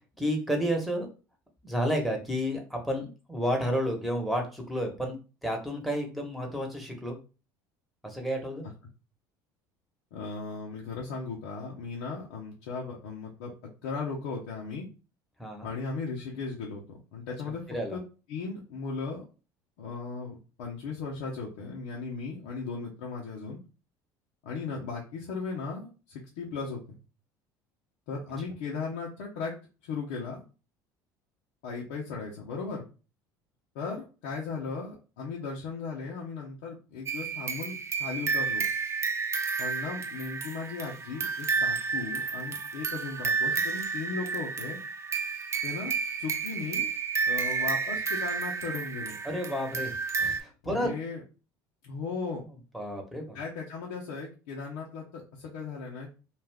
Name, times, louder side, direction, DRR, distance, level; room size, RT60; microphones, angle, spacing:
voice 1, 0.2-1.1 1.6-5.2 5.4-7.2 8.0-8.7 15.4-15.7 17.7-18.0 49.2-50.9 52.4-53.4, equal, ahead, 2 dB, 1.1 m, -31 dB
voice 2, 10.1-13.5 13.8-14.9 15.6-17.6 17.9-18.0 18.3-19.3 19.8-23.6 24.4-26.8 28.1-29.5 29.8-30.4 31.6-32.8 33.7-38.6 39.6-44.8 45.6-45.9 46.2-46.9 47.2-49.2 50.6-51.2 51.8-52.4 53.3-56.1, left 4 dB, 80° left, -3 dB, 0.7 m, -37 dB
sound 1, 37.1-50.4, right 5 dB, 30° right, 0.5 m, -31 dB
2.4 x 2.4 x 3.4 m, 0.33 s
supercardioid pair, 80°, 10 cm